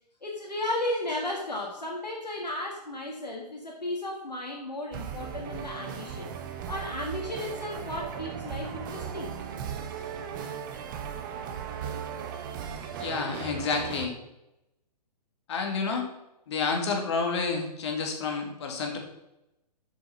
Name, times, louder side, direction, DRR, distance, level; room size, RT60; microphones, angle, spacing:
voice 1, 0.2-6.3 6.7-9.4, left 1 dB, 80° left, -1 dB, 1.7 m, -34 dB
sound 1, 4.9-14.1, right 8 dB, 30° right, 0.9 m, -37 dB
voice 2, 13.0-14.1 15.5-16.1 16.5-19.0, left 4 dB, 45° left, 2 dB, 2.1 m, -29 dB
7.6 x 6.8 x 5.8 m, 0.90 s
figure-of-eight pair, 125°, 21 cm